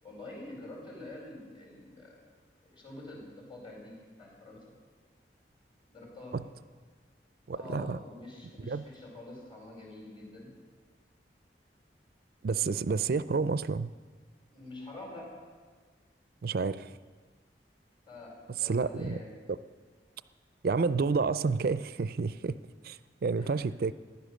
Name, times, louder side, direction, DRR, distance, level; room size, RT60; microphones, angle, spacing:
voice 1, 0.0-2.2 2.6-4.7 5.9-6.4 7.5-10.5 14.5-15.4 18.0-19.3 23.4-23.5, left 2 dB, 30° left, -2 dB, 4.6 m, -46 dB
voice 2, 7.5-8.0 8.6-8.8 12.4-13.9 16.4-17.0 18.6-19.2 20.6-22.6 22.8-23.9, right 4 dB, 55° right, 15 dB, 0.4 m, -30 dB
15.0 x 11.0 x 6.5 m, 1.5 s
head